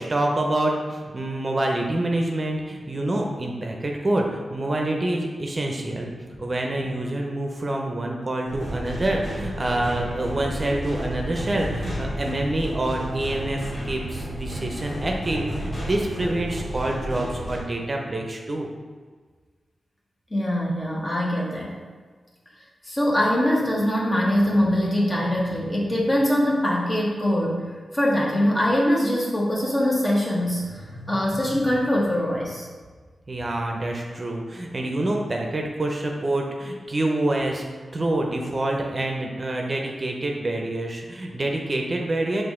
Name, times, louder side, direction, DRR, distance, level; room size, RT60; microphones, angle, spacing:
voice 1, 0.0-18.7 33.3-37.6 37.9-42.4, right 1 dB, 45° right, 1 dB, 0.6 m, -26 dB
sound 1, 8.5-17.6, equal, 60° left, 1.5 m, -32 dB
voice 2, 20.3-21.8 22.8-27.6 27.9-32.7, equal, 30° left, -4 dB, 1.2 m, -23 dB
4.8 x 2.5 x 3.6 m, 1.5 s
cardioid pair, 55°, 0 cm